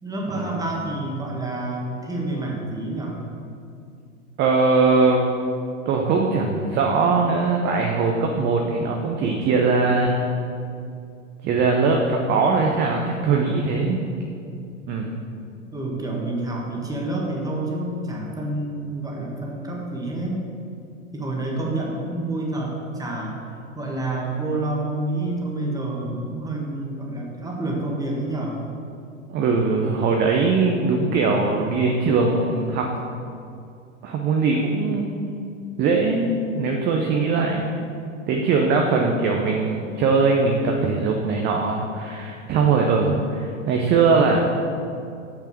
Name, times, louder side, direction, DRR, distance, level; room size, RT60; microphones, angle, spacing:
voice 1, 0.0-3.2 15.7-20.5 21.1-23.4 23.7-28.5, right 2 dB, 10° right, -2 dB, 1.5 m, -28 dB
voice 2, 4.4-5.2 5.9-10.3 11.4-14.0 14.9-15.2 29.3-32.9 34.0-35.3 35.8-36.3 36.5-37.7 38.3-44.4, right 4 dB, 25° right, 1 dB, 0.7 m, -21 dB
6.8 x 5.8 x 6.2 m, 2.4 s
figure-of-eight pair, 95°, 38 cm